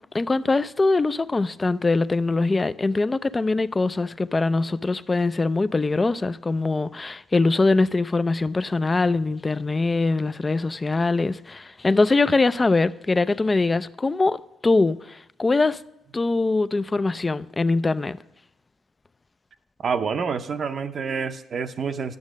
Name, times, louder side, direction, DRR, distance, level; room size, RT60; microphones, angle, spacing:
voice 1, 0.1-14.4 14.6-15.8 16.1-18.2, left 3 dB, 25° left, 0.3 m, -22 dB
voice 2, 19.8-22.2, right 5 dB, 50° right, 0.6 m, -27 dB
9.5 x 6.3 x 6.2 m
cardioid pair, 90°, 0 cm